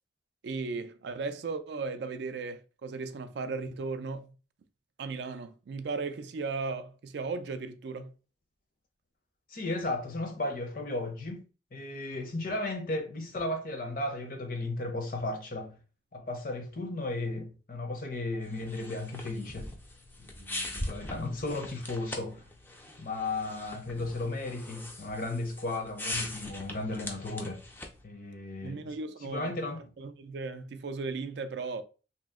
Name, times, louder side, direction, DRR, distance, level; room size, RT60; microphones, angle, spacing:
voice 1, 0.4-4.3 5.0-8.1 28.6-29.6 30.0-31.8, right 4 dB, 60° right, 0.3 m, -36 dB
voice 2, 9.5-11.4 11.7-15.8 16.1-19.7 20.2-22.4 23.0-27.6 28.0-28.9 29.2-29.9, left 2 dB, 45° left, 0.7 m, -35 dB
sound 1, 18.4-28.0, left 1 dB, 10° left, 0.4 m, -41 dB
2.8 x 2.0 x 3.5 m
head